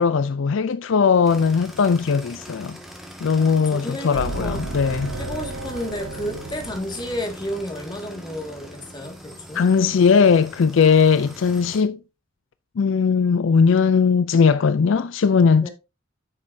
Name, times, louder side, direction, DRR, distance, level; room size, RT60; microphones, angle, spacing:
voice 1, 0.0-2.8 3.2-5.1 9.5-12.0 12.8-15.7, left 5 dB, 65° left, 0.4 m, -18 dB
sound 1, 1.2-11.8, equal, ahead, 1.7 m, -41 dB
voice 2, 3.3-4.7 5.2-9.6 15.6-15.7, left 1 dB, 20° left, 2.0 m, -32 dB
sound 2, 4.1-8.9, right 2 dB, 85° right, 1.0 m, -34 dB
9.9 x 6.5 x 2.7 m
head